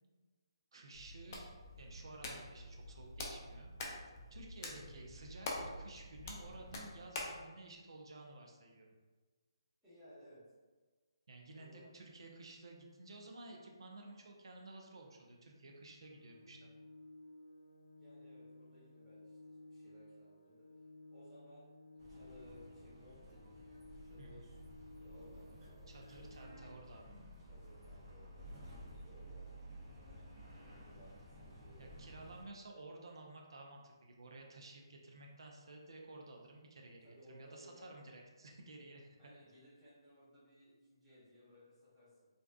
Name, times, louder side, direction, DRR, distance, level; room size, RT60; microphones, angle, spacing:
voice 1, 0.7-1.5 1.8-3.7 4.3-8.9 11.3-16.7 24.2-24.5 25.9-27.2 31.8-39.2, right 2 dB, 70° right, 1 dB, 0.4 m, -54 dB
Hands, 0.9-7.4, left 2 dB, 35° left, 0.4 m, -46 dB
voice 2, 9.8-10.4 11.5-12.0 18.0-20.7 21.1-23.6 24.0-24.7 25.0-27.0 27.4-29.4 29.7-30.1 30.6-31.9 37.0-38.0 39.2-42.3, equal, ahead, -16 dB, 0.9 m, -61 dB
Organ, 16.1-27.0, left 2 dB, 80° left, 0.6 m, -57 dB
sound 1, 22.0-32.4, equal, 30° right, 0.6 m, -54 dB
2.5 x 2.3 x 2.3 m, 1.3 s
hypercardioid pair, 155°, 3 cm